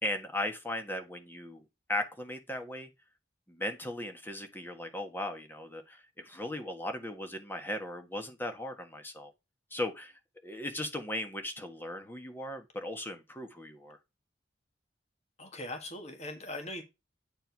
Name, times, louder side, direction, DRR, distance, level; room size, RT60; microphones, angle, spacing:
voice 1, 0.0-2.9 3.5-9.3 9.7-14.0, left 1 dB, 10° left, 1.4 m, -37 dB
voice 2, 15.4-16.8, left 1 dB, 35° left, 1.8 m, -40 dB
9.1 x 4.6 x 4.7 m
head